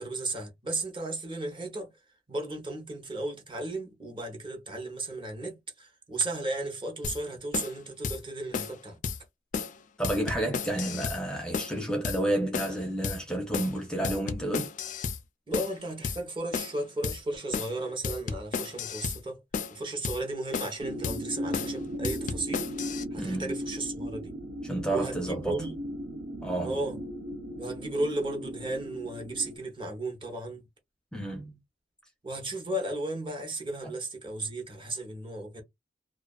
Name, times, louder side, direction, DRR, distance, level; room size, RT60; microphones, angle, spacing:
voice 1, 0.0-1.9 2.3-9.0 15.5-19.4 19.7-24.3 24.9-25.8 26.6-27.0 27.6-30.6 32.2-35.6, right 2 dB, 30° right, 0.8 m, -34 dB
sound 1, 7.0-7.2 7.5-7.8 8.0-8.2 8.5-8.8 9.0-9.2 9.5-9.8 10.0-11.2 11.5-11.8 12.0-12.2 12.5-12.8 13.0-13.2 13.5-13.8 14.0-15.2 15.5-15.8 16.0-16.2 16.5-16.8 17.0-17.2 17.5-17.8 18.0-19.2 19.5-19.8 20.0-20.2 20.5-20.8 21.0-21.2 21.5-21.8 22.0-23.0, left 5 dB, 45° left, 0.3 m, -33 dB
voice 2, 10.0-14.7 23.2-23.5 24.6-25.6 26.4-26.8 31.1-31.6, right 1 dB, 5° left, 0.6 m, -30 dB
sound 2, 20.8-29.6, equal, 90° right, 0.7 m, -37 dB
2.4 x 2.4 x 2.3 m
head